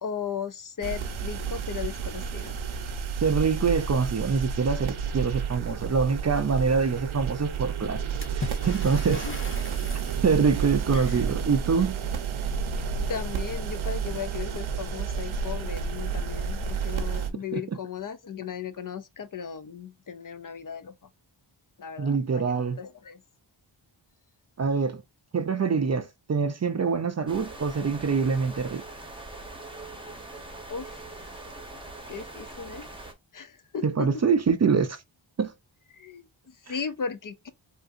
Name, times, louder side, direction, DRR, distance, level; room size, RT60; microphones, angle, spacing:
voice 1, 0.0-2.6 9.2-9.7 10.6-11.3 12.9-21.0 21.8-23.2 30.7-31.0 32.1-32.9 33.3-34.2 35.9-37.5, left 7 dB, 45° left, 0.5 m, -37 dB
sound 1, 0.8-17.3, right 6 dB, 85° right, 0.7 m, -31 dB
voice 2, 3.2-8.0 8.3-9.3 10.2-12.0 17.5-17.6 22.0-22.8 24.6-25.0 25.3-28.8 33.8-35.0 35.4-35.5 36.7-36.8, right 5 dB, 35° right, 0.5 m, -25 dB
Water / Splash splatter, 8.2-10.3, left 3 dB, 25° left, 1.0 m, -38 dB
sound 2, 27.3-33.1, right 2 dB, 10° right, 0.9 m, -42 dB
3.6 x 2.6 x 2.5 m
wide cardioid pair, 90°, 48 cm